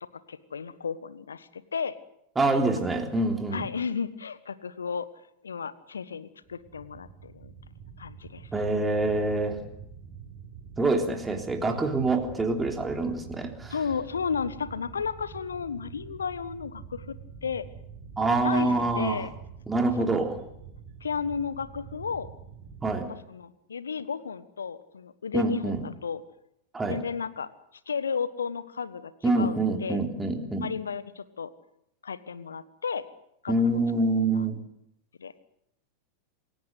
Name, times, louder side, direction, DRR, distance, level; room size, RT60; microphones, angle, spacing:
voice 1, 0.3-1.9 3.5-5.1 5.4-7.5 8.0-8.5 13.7-17.1 17.4-17.6 18.4-19.3 20.0-20.2 21.0-22.3 23.1-26.2 26.9-27.5 27.9-30.0 30.6-31.5 32.0-33.0 33.4-33.8 34.3-34.5 35.2-35.3, left 6 dB, 70° left, 14 dB, 1.4 m, -33 dB
voice 2, 2.4-3.7 8.5-9.6 10.8-13.7 18.2-19.3 19.7-20.4 22.8-23.1 25.3-25.8 26.7-27.0 29.2-30.7 33.5-34.6, right 2 dB, 10° right, 3 dB, 3.5 m, -26 dB
sound 1, 6.4-23.0, right 6 dB, 30° right, 6.5 m, -46 dB
27.5 x 16.5 x 8.1 m, 0.78 s
figure-of-eight pair, 90°, 0 cm